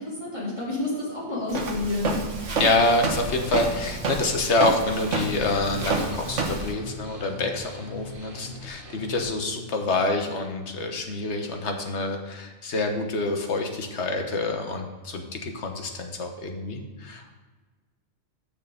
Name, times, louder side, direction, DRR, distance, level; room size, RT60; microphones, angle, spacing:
voice 1, 0.0-2.2, left 2 dB, 20° left, -7 dB, 3.3 m, -29 dB
Walk footsteps, 1.5-6.7, right 3 dB, 65° right, 1.4 m, -29 dB
voice 2, 2.6-17.3, left 2 dB, 55° left, 4 dB, 1.4 m, -27 dB
sound 1, 4.9-9.2, left 2 dB, 80° right, 1.9 m, -42 dB
6.9 x 6.5 x 6.8 m, 1.3 s
omnidirectional pair, 1.4 m